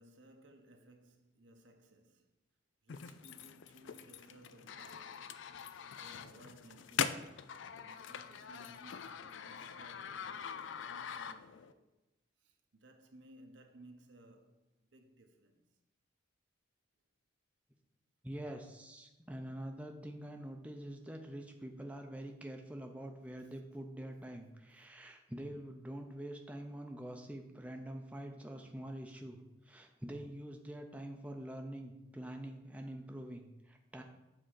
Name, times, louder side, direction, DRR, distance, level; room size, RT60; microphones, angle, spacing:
voice 1, 0.0-2.3 2.8-5.3 5.6-11.9 12.4-15.8 19.4-19.6 21.5-21.6 23.4-23.6 25.5-25.6 29.6-29.7 32.8-33.3, right 1 dB, 80° right, 1.0 m, -61 dB
sound 1, 2.9-11.7, left 7 dB, 85° left, 0.4 m, -43 dB
voice 2, 18.2-29.4 29.6-34.0, right 1 dB, 5° right, 0.6 m, -45 dB
7.6 x 3.7 x 6.3 m
head